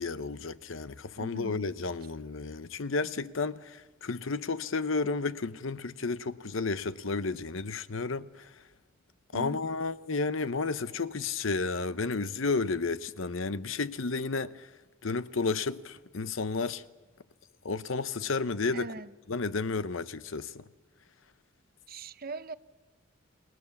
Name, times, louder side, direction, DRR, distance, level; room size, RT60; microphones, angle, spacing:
voice 1, 0.0-8.5 9.3-14.7 15.0-16.8 17.6-18.9 19.3-20.6, left 4 dB, 70° left, 0.8 m, -32 dB
voice 2, 1.2-1.7 9.3-9.6 18.7-19.1 21.9-22.5, right 3 dB, 45° right, 0.8 m, -40 dB
29.0 x 20.0 x 7.1 m
head